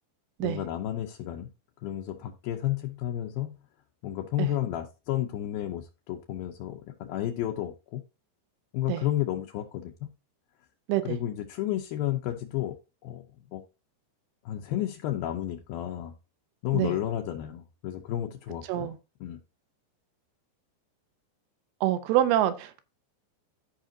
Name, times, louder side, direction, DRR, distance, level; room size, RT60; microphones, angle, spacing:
voice 1, 0.4-1.5 1.8-3.6 4.0-8.0 8.7-10.1 11.0-12.8 13.0-13.2 13.5-13.6 14.5-16.2 16.6-18.9 19.2-19.4, left 12 dB, 85° left, 2.1 m, -32 dB
voice 2, 21.8-22.8, right 12 dB, 80° right, 2.4 m, -26 dB
15.0 x 5.0 x 2.7 m
omnidirectional pair, 5.2 m